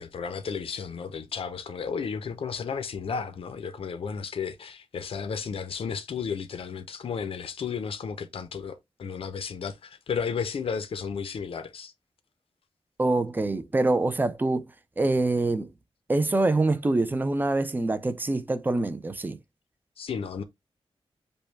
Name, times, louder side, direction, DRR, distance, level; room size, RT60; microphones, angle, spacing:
voice 1, 0.0-11.9 20.0-20.4, left 6 dB, 65° left, 0.6 m, -33 dB
voice 2, 13.0-14.7 15.0-15.7 16.1-19.4, right 2 dB, 20° right, 0.5 m, -25 dB
5.3 x 2.2 x 4.5 m
wide cardioid pair, 160°, 10 cm